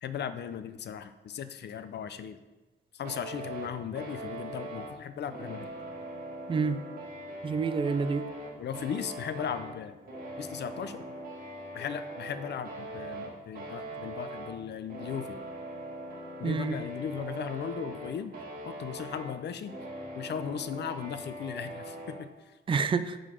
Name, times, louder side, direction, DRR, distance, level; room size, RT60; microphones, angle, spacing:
voice 1, 0.0-2.4 2.9-5.7 8.6-10.0 10.4-11.0 11.7-15.4 16.4-18.3 18.7-19.7 20.1-22.3, left 8 dB, 65° left, 11 dB, 0.5 m, -37 dB
sound 1, 3.0-22.2, right 1 dB, 50° right, 2.1 m, -41 dB
voice 2, 6.5-6.8 7.4-8.3 16.4-16.8 22.7-23.2, right 5 dB, 30° right, 10 dB, 0.4 m, -28 dB
9.1 x 3.9 x 5.0 m, 1.2 s
wide cardioid pair, 145°, 19 cm